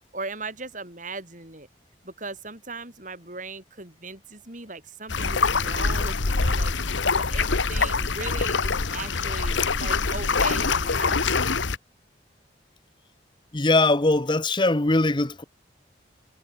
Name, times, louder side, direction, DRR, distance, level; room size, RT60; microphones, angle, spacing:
voice 1, 0.1-1.7 2.0-6.8 7.1-11.5, right 3 dB, 45° right, 6.6 m, -38 dB
sound 1, 5.1-11.8, left 4 dB, 90° left, 1.3 m, -24 dB
voice 2, 13.5-15.4, left 2 dB, 25° left, 0.9 m, -21 dB
head